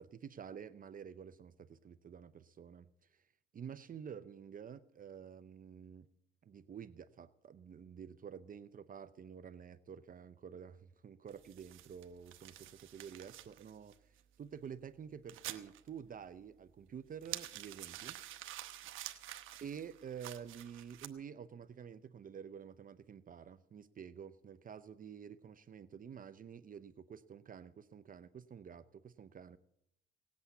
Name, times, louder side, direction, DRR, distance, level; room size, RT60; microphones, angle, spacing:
voice 1, 0.0-6.1 6.4-18.2 18.7-19.3 19.6-29.6, right 7 dB, 45° right, 13 dB, 0.7 m, -50 dB
sound 1, 11.3-21.1, right 13 dB, 90° right, 1.1 m, -50 dB
18.0 x 8.5 x 8.2 m, 0.78 s
cardioid pair, 90°, 20 cm